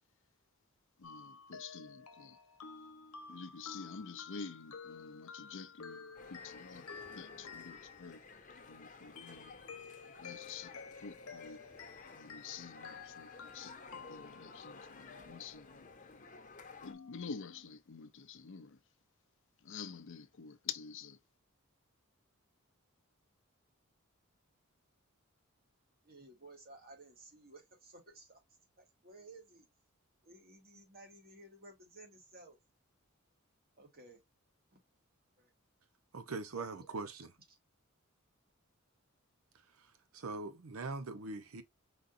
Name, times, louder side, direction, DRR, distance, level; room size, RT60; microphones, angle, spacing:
sound 1, 1.0-8.6 9.2-14.8 16.8-17.6, left 5 dB, 85° left, 1.0 m, -51 dB
voice 1, 1.0-2.4 3.3-8.2 8.7-9.5 10.2-11.6 12.1-15.9 16.8-18.8 19.6-21.2, left 6 dB, 60° left, 0.6 m, -48 dB
sound 2, 6.2-16.9, left 4 dB, 40° left, 0.9 m, -54 dB
voice 2, 26.0-28.4 28.8-29.7 30.2-32.6 33.8-34.2 34.7-34.8 35.4-35.5 36.5-37.0 37.5-37.6, right 2 dB, 45° right, 1.7 m, -56 dB
voice 3, 36.1-37.3 39.8-41.6, right 3 dB, 70° right, 0.7 m, -42 dB
5.0 x 3.9 x 2.5 m
head